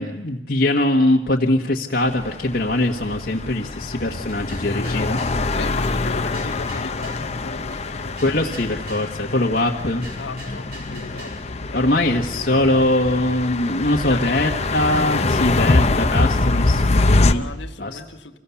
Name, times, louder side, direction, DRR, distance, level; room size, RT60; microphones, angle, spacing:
voice 1, 0.0-5.2 8.2-10.0 11.7-17.4 17.8-18.0, left 1 dB, 60° left, -1 dB, 1.4 m, -22 dB
sound 1, 2.1-17.3, left 2 dB, 35° left, 0.8 m, -24 dB
sound 2, 4.3-5.4 5.9-7.2 7.7-9.1 9.6-11.4, right 2 dB, 60° right, 6.4 m, -43 dB
voice 2, 4.6-5.2 5.5-8.9 10.1-12.8 14.1-14.6 17.3-18.4, left 2 dB, 85° left, 6 dB, 1.5 m, -37 dB
26.5 x 16.5 x 7.1 m, 0.98 s
head